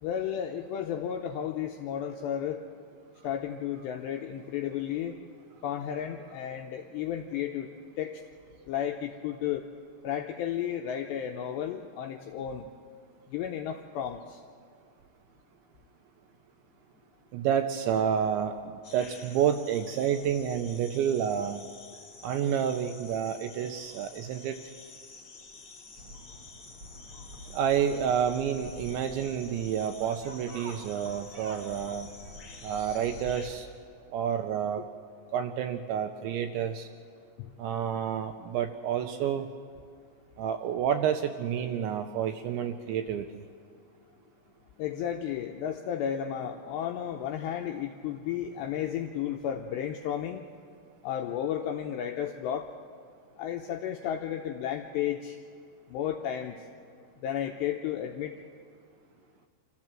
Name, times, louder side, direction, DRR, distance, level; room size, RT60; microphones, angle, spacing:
voice 1, 0.0-2.6 3.2-5.2 5.6-7.7 8.0-8.2 8.7-9.7 10.0-12.7 13.3-14.4 37.4-37.5 44.8-50.4 51.0-52.7 53.4-55.4 55.9-56.6 57.2-58.4, left 9 dB, 90° left, 3 dB, 2.5 m, -33 dB
voice 2, 17.3-21.6 22.2-24.6 27.5-32.1 32.6-33.7 34.1-34.8 35.3-36.9 37.6-39.5 40.4-43.4, right 8 dB, 80° right, 7 dB, 2.7 m, -29 dB
sound 1, 18.8-33.5, left 4 dB, 40° left, 2.0 m, -50 dB
sound 2, 26.0-33.6, right 1 dB, 45° right, 2.0 m, -48 dB
27.0 x 14.0 x 7.5 m, 2.2 s
omnidirectional pair, 5.8 m